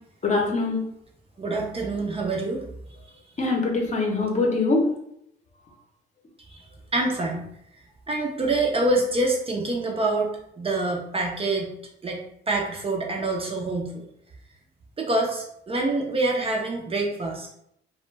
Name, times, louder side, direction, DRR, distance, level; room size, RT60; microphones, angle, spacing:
voice 1, 0.2-0.8 3.4-4.9, left 3 dB, 35° left, 0 dB, 0.7 m, -23 dB
voice 2, 1.4-2.7 6.5-6.6 6.9-7.5 8.1-10.3 10.6-11.7 12.0-14.1 15.0-17.5, right 2 dB, 30° right, -1 dB, 0.5 m, -26 dB
2.2 x 2.1 x 3.2 m, 0.74 s
cardioid pair, 90°, 20 cm